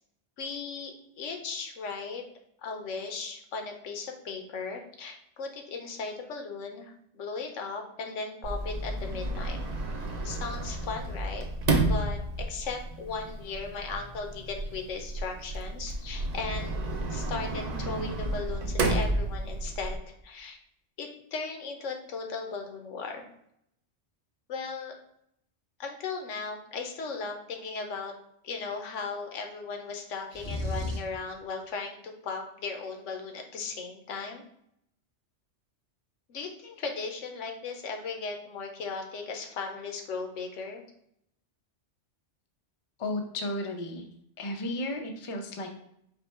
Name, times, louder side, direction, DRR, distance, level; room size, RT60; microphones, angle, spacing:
voice 1, 0.4-2.2 2.6-9.6 10.2-11.5 11.9-20.6 21.0-23.2 24.5-25.0 25.8-28.1 28.4-34.4 36.3-40.8, left 4 dB, 80° left, 4 dB, 1.1 m, -37 dB
Sliding door, 8.4-20.0, right 2 dB, 45° right, 0.6 m, -31 dB
sound 1, 30.3-31.2, left 1 dB, 75° right, 1.2 m, -33 dB
voice 2, 43.0-44.0 44.4-45.7, left 1 dB, 35° left, 3 dB, 0.5 m, -33 dB
5.1 x 2.1 x 4.6 m, 0.74 s
omnidirectional pair, 1.3 m